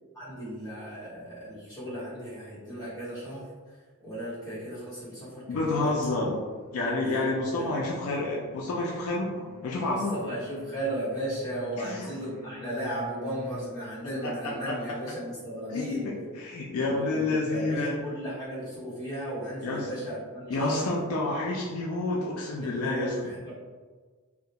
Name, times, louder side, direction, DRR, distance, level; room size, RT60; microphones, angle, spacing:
voice 1, 0.1-3.4 4.0-6.0 7.0-7.2 7.6-7.7 9.9-16.1 16.8-20.9 22.6-23.6, right 1 dB, 15° left, -11 dB, 1.1 m, -35 dB
voice 2, 5.5-6.4 6.7-10.1 11.8-12.1 14.2-14.8 15.7-18.0 19.6-19.9 20.5-23.1, left 2 dB, 70° left, -3 dB, 0.4 m, -29 dB
sound 1, 6.4-13.8, left 1 dB, 10° right, 0.7 m, -49 dB
2.3 x 2.1 x 2.8 m, 1.5 s
head